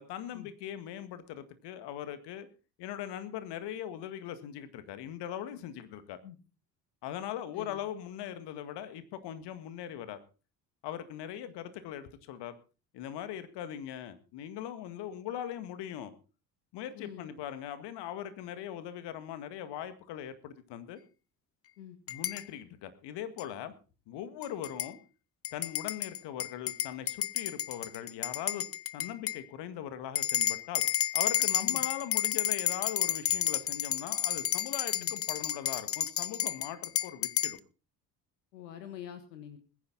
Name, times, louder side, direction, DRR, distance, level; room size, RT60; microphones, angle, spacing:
voice 1, 0.0-2.5 2.8-6.2 7.0-10.2 10.8-12.6 12.9-16.1 16.7-21.0 22.1-23.7 24.1-25.0 25.5-28.7 28.9-30.8 31.1-37.6, left 10 dB, 55° left, 11 dB, 2.0 m, -40 dB
voice 2, 16.9-17.3 21.8-22.0 29.1-29.2 31.6-31.8 34.9-35.1 38.5-39.6, left 10 dB, 75° left, 8 dB, 1.6 m, -46 dB
sound 1, 22.1-22.4 23.4-23.5 24.4-24.9 25.4-29.4 30.2-37.6, left 11 dB, 30° left, 0.7 m, -31 dB
21.0 x 10.0 x 4.0 m, 0.33 s
figure-of-eight pair, 55°, 50 cm